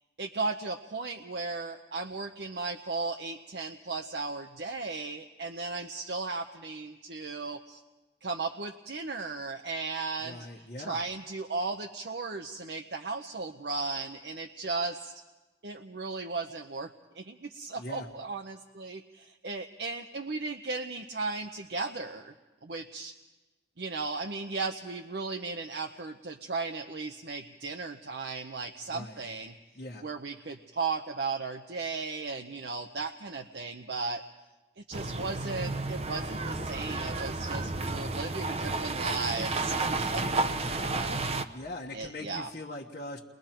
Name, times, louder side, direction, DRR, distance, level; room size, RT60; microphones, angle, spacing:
voice 1, 0.2-7.8 8.2-15.1 15.6-16.9 17.1-22.3 22.6-23.1 23.8-29.5 30.0-34.2 34.8-41.2 41.9-42.5, right 3 dB, 70° right, 4 dB, 0.8 m, -36 dB
voice 2, 10.2-11.0 17.7-18.1 28.9-29.2 29.7-30.1 40.2-40.9 41.5-43.2, left 1 dB, 45° left, -2 dB, 1.2 m, -41 dB
sound 1, 34.9-41.4, right 3 dB, 35° right, 0.8 m, -32 dB
30.0 x 22.0 x 4.5 m, 1.1 s
head